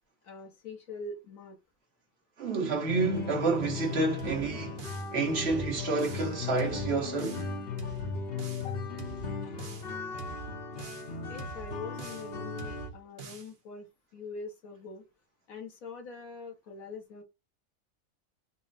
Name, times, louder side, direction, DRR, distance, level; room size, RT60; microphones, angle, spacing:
voice 1, 0.2-1.6 8.5-8.8 11.3-13.9 14.1-15.1 15.5-17.2, left 3 dB, 80° left, 1.4 m, -43 dB
voice 2, 2.4-7.5, right 3 dB, 50° right, 1.4 m, -29 dB
sound 1, 2.9-12.9, left 5 dB, 50° left, 1.0 m, -37 dB
sound 2, 4.2-5.1 5.4-6.3 6.6-7.5 7.8-8.7 9.0-9.9 10.2-11.1 11.4-12.3 12.6-13.5, right 6 dB, 80° right, 1.4 m, -44 dB
4.2 x 2.1 x 4.0 m
omnidirectional pair, 1.4 m